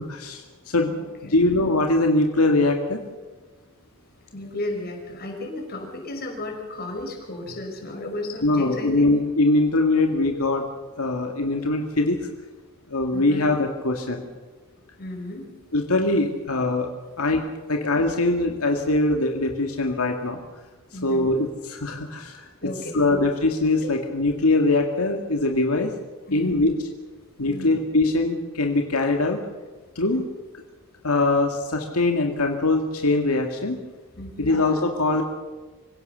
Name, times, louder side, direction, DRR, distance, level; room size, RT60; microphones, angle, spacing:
voice 1, 0.0-1.0 1.3-3.0 8.4-10.6 11.0-12.2 12.9-14.2 15.7-16.9 17.2-20.4 20.9-22.5 22.9-25.9 26.3-26.8 27.4-29.4 30.0-30.2 31.0-33.8 34.4-35.2, left 2 dB, 85° left, 3 dB, 2.1 m, -22 dB
voice 2, 0.9-1.4 4.3-9.1 13.1-13.5 15.0-15.5 20.9-21.3 22.6-23.2 26.3-26.6 27.4-27.7 30.1-30.2 34.2-34.6, left 1 dB, 45° left, 2 dB, 5.5 m, -34 dB
26.0 x 16.5 x 6.8 m, 1.3 s
head